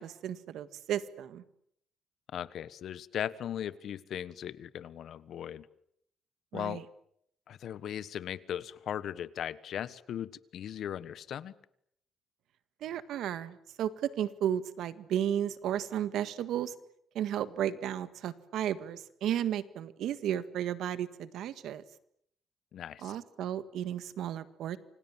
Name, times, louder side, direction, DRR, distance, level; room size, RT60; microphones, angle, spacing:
voice 1, 0.0-1.4 6.5-6.8 12.8-16.7 17.1-21.8 23.0-24.8, right 10 dB, 80° right, 13 dB, 1.7 m, -34 dB
voice 2, 2.3-5.7 6.5-6.8 7.5-11.5 22.7-23.2, left 10 dB, 70° left, 17 dB, 1.3 m, -38 dB
28.5 x 25.5 x 7.4 m, 0.72 s
cardioid pair, 90°, 0 cm